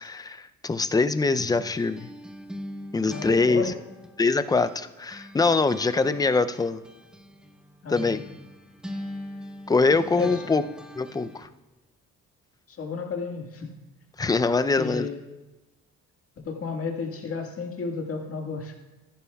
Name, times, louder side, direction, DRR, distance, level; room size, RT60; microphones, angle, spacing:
voice 1, 0.0-2.1 2.9-3.7 4.2-6.8 7.9-8.2 9.7-10.6 11.0-11.5 14.2-15.1, left 3 dB, 15° left, 12 dB, 0.4 m, -23 dB
sound 1, 1.4-4.8 5.1-11.5, equal, 5° right, 0.9 m, -42 dB
voice 2, 3.1-3.7 7.8-8.2 10.2-10.4 12.7-13.7 14.8-15.2 16.5-18.8, left 5 dB, 50° left, 3 dB, 1.7 m, -32 dB
14.5 x 11.0 x 2.3 m, 1.1 s
cardioid pair, 90°, 30 cm